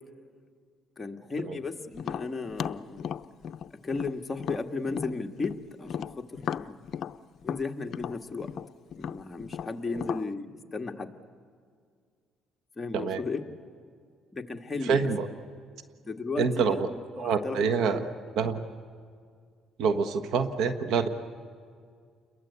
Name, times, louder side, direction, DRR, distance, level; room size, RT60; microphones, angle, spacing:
voice 1, 1.0-3.1 3.8-6.8 7.4-8.5 9.0-11.1 12.8-13.4 14.3-15.1 16.0-17.6 17.8-18.0, left 3 dB, 20° left, 3 dB, 1.8 m, -35 dB
Tap, 2.0-5.6 5.9-10.3, left 8 dB, 55° left, 0.6 m, -36 dB
voice 2, 14.9-15.3 16.4-16.9 17.2-18.0 18.4-18.6 19.8-21.1, right 5 dB, 75° right, 9 dB, 1.4 m, -26 dB
29.5 x 22.0 x 8.4 m, 2.1 s
cardioid pair, 105°, 0 cm